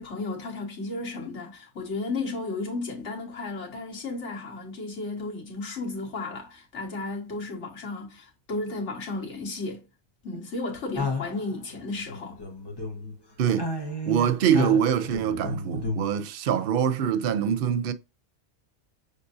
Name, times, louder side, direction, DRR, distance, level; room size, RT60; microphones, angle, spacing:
voice 1, 0.0-9.8 10.2-12.4, left 3 dB, 80° left, 1.7 m, -34 dB
sound 1, 10.9-13.1 13.4-16.1, left 2 dB, 25° left, 0.9 m, -32 dB
voice 2, 13.4-13.7 14.1-17.9, right 8 dB, 60° right, 0.7 m, -24 dB
6.5 x 2.6 x 2.5 m
omnidirectional pair, 1.2 m